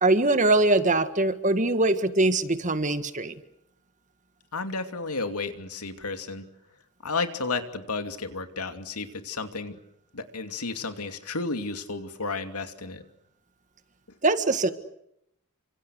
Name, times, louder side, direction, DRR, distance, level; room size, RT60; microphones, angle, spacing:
voice 1, 0.0-3.3 14.2-14.7, right 2 dB, 35° right, 10 dB, 1.7 m, -22 dB
voice 2, 4.5-6.5 7.0-9.8 10.1-13.0, left 3 dB, 85° left, 7 dB, 2.7 m, -32 dB
29.5 x 26.0 x 6.5 m, 0.77 s
head